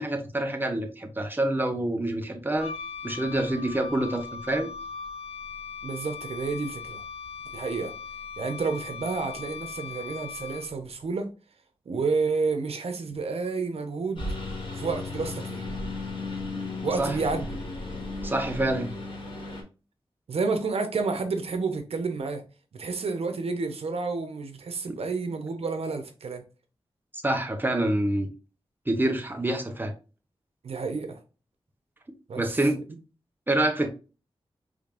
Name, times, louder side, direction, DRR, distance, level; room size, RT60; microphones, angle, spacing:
voice 1, 0.0-2.7 3.0-4.7 17.0-17.2 18.2-18.9 24.9-25.0 27.1-28.3 28.9-29.9 32.4-32.8 33.5-33.9, right 1 dB, 20° right, 0.9 m, -27 dB
Wind instrument woodwind instrument, 2.6-10.9, left 6 dB, 75° left, 0.4 m, -39 dB
voice 2, 5.8-7.0 7.5-7.9 8.4-11.3 11.9-14.3 14.8-15.7 16.8-17.6 20.3-22.4 22.7-26.4 30.6-31.2 32.3-32.4, right 4 dB, 90° right, 0.9 m, -30 dB
Engine, 14.2-19.6, left 2 dB, 55° left, 2.0 m, -34 dB
5.2 x 3.4 x 2.5 m
wide cardioid pair, 105°, 10 cm